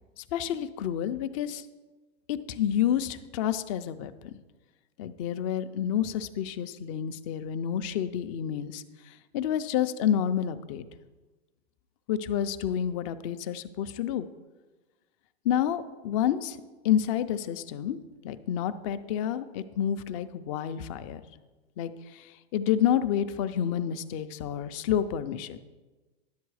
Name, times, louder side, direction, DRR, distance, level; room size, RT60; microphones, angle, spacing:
voice 1, 0.2-1.7 2.3-4.3 5.0-10.9 12.1-14.3 15.4-16.6 16.8-18.0 18.2-21.2 21.8-25.6, left 9 dB, 30° left, 11 dB, 0.4 m, -29 dB
11.0 x 7.6 x 4.7 m, 1.2 s
supercardioid pair, 150°, 33 cm